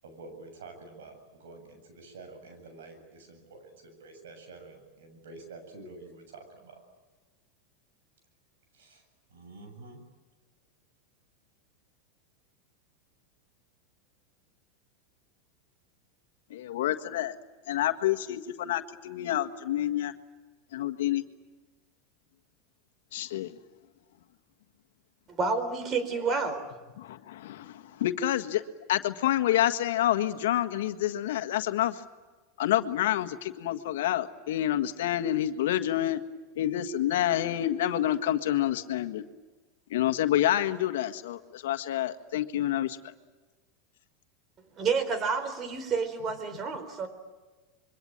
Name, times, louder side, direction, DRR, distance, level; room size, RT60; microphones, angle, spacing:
voice 1, 0.0-6.8 8.7-9.0 9.3-10.0, right 3 dB, 85° right, 6 dB, 7.6 m, -48 dB
voice 2, 16.5-17.3 17.7-20.1 20.7-21.2 23.1-23.5 27.0-28.6 28.9-32.0 32.6-36.2 36.5-39.2 39.9-43.0, left 12 dB, 80° left, 8 dB, 1.6 m, -28 dB
voice 3, 25.3-26.6 44.8-47.1, right 4 dB, 35° right, 11 dB, 4.1 m, -29 dB
26.5 x 23.5 x 9.0 m, 1.3 s
supercardioid pair, 120°, 0 cm